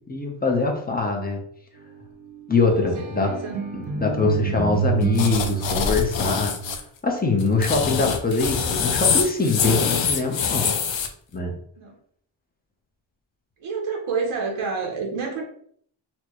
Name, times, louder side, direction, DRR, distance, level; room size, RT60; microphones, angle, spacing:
voice 1, 0.1-1.4 2.5-3.4 3.7-10.7 11.3-11.5, left 4 dB, 20° left, 2 dB, 0.7 m, -23 dB
sound 1, 2.7-6.7, right 8 dB, 60° right, 0.8 m, -28 dB
voice 2, 2.8-3.6 7.5-7.9 8.6-8.8 11.8-12.0 13.6-15.4, right 5 dB, 85° right, 0 dB, 0.9 m, -30 dB
sound 2, 5.2-6.8 7.4-11.1, left 6 dB, 65° left, 0.6 m, -24 dB
4.3 x 2.2 x 3.0 m, 0.63 s
wide cardioid pair, 110°, 48 cm